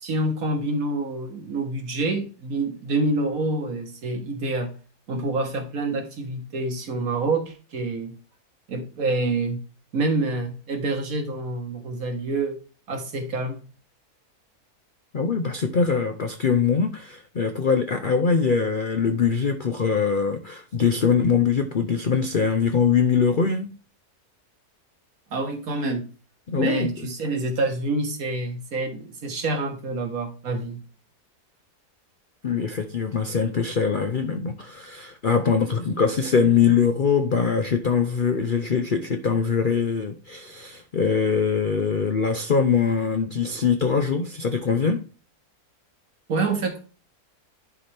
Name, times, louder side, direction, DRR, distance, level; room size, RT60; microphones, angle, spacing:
voice 1, 0.0-4.7 5.1-8.1 8.7-9.6 9.9-12.6 12.9-13.6 25.3-26.1 26.5-30.8 46.3-46.8, right 2 dB, 60° right, 1.7 m, -27 dB
voice 2, 15.1-23.7 26.5-27.1 32.4-45.0, left 6 dB, 55° left, 0.5 m, -22 dB
11.0 x 4.3 x 3.4 m
omnidirectional pair, 1.7 m